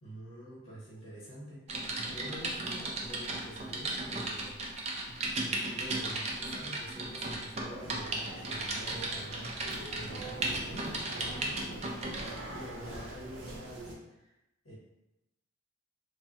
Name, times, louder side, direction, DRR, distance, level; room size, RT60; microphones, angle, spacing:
voice 1, 0.0-4.8 5.4-11.6 12.5-14.4 14.6-14.7, equal, 70° left, -8 dB, 1.0 m, -47 dB
Typing, 1.7-12.4 12.9-13.1, right 2 dB, 30° right, 0.3 m, -36 dB
sound 1, 7.7-13.9, right 1 dB, 75° right, 0.6 m, -43 dB
3.3 x 2.1 x 2.7 m, 0.92 s
head